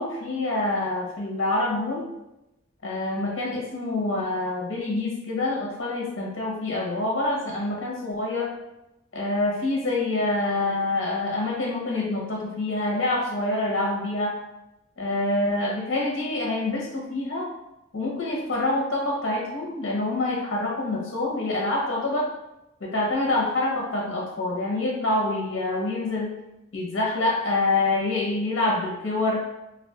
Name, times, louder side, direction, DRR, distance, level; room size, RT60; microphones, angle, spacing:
voice 1, 0.0-2.0 2.8-8.5 9.1-14.3 15.0-17.5 17.9-22.3 22.8-26.3 26.7-29.4, left 2 dB, 65° left, -3 dB, 0.9 m, -26 dB
2.4 x 2.4 x 3.5 m, 0.93 s
head